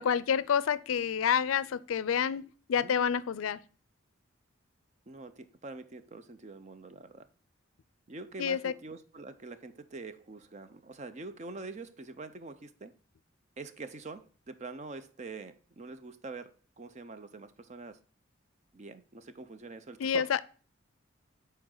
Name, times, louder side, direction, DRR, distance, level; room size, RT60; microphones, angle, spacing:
voice 1, 0.0-3.6 8.4-8.7 20.0-20.4, left 7 dB, 85° left, 0.4 m, -28 dB
voice 2, 5.1-7.3 8.1-12.9 13.6-18.0 18.7-20.4, right 3 dB, 35° right, 0.5 m, -45 dB
7.8 x 4.5 x 3.8 m
head